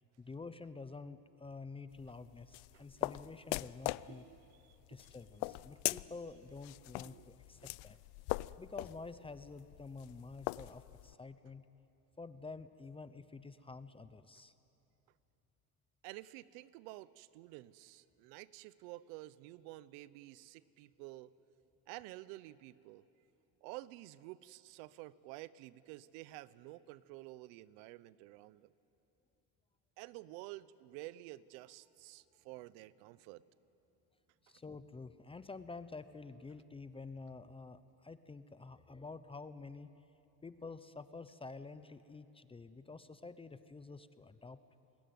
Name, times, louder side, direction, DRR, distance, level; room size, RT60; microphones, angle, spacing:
voice 1, 0.0-4.3 4.9-8.0 8.6-11.7 12.2-14.5 34.4-39.9 40.4-44.6, left 3 dB, 15° left, 12 dB, 0.7 m, -49 dB
sound 1, 1.9-11.1, left 21 dB, 70° left, 0.6 m, -41 dB
voice 2, 4.1-5.2 7.0-7.3 16.0-21.3 21.9-23.0 23.6-28.7 30.0-33.4, right 17 dB, 80° right, 18 dB, 0.9 m, -51 dB
29.0 x 20.0 x 9.4 m, 2.9 s
cardioid pair, 130°, 41 cm